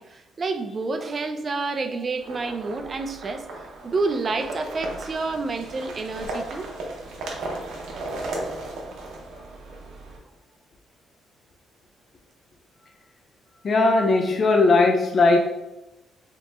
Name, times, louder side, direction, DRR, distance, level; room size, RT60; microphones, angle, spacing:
voice 1, 0.0-3.5 3.8-6.7, right 3 dB, 40° right, 7 dB, 0.3 m, -29 dB
sound 1, 2.2-10.2, right 2 dB, 80° right, 0.6 m, -36 dB
voice 2, 13.6-15.4, left 3 dB, 45° left, 3 dB, 0.3 m, -18 dB
2.9 x 2.0 x 3.3 m, 0.94 s
cardioid pair, 90°, 0 cm